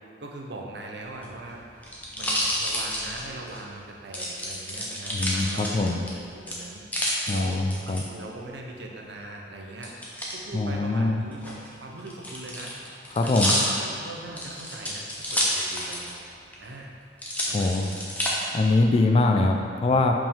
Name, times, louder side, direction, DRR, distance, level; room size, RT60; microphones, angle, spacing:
voice 1, 0.2-1.6 1.9-9.9 10.3-16.2 16.6-17.0 17.5-18.0, right 2 dB, 60° right, 0 dB, 0.7 m, -41 dB
sound 1, 1.1-3.6 4.1-6.1 6.5-8.0 9.8-10.4 11.3-16.2 16.5-16.6 17.2-18.3 18.9-19.5, equal, 10° left, 0.7 m, -29 dB
voice 2, 5.1-6.0 7.3-8.0 10.5-11.2 13.2-13.6 17.5-17.9 18.5-20.1, left 2 dB, 30° left, 3 dB, 0.3 m, -23 dB
5.3 x 5.1 x 3.6 m, 2.4 s
head